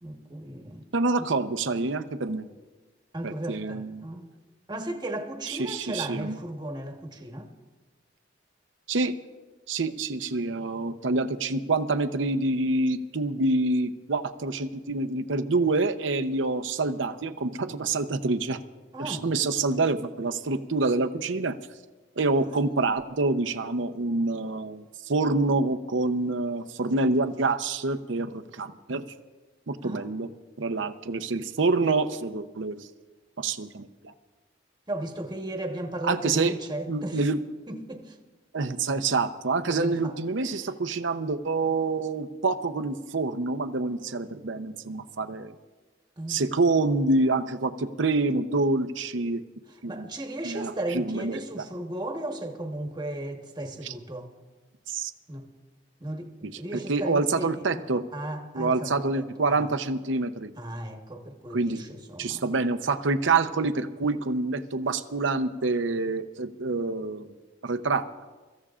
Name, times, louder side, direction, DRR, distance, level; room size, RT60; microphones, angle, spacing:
voice 1, 0.0-0.9 1.2-1.3 3.1-4.3 4.7-7.5 18.9-19.3 22.5-22.6 29.8-30.1 34.9-37.2 37.7-38.2 39.7-40.1 40.5-40.7 46.2-46.4 49.7-54.3 55.3-55.5 56.0-57.8 58.1-59.7 60.6-62.5, right 1 dB, 20° right, 1.3 m, -35 dB
voice 2, 0.9-2.5 3.2-4.0 5.5-6.4 8.9-9.1 9.7-18.6 19.0-21.6 22.2-29.0 29.7-30.3 30.6-32.9 33.4-34.1 36.0-36.6 36.9-37.4 38.5-45.5 46.3-49.4 49.8-50.0 50.4-51.4 53.8-53.9 54.9-55.1 56.7-58.0 58.5-60.5 61.5-61.8 62.2-67.3 67.6-68.0, right 3 dB, 75° right, 0.8 m, -27 dB
29.0 x 15.0 x 2.5 m
head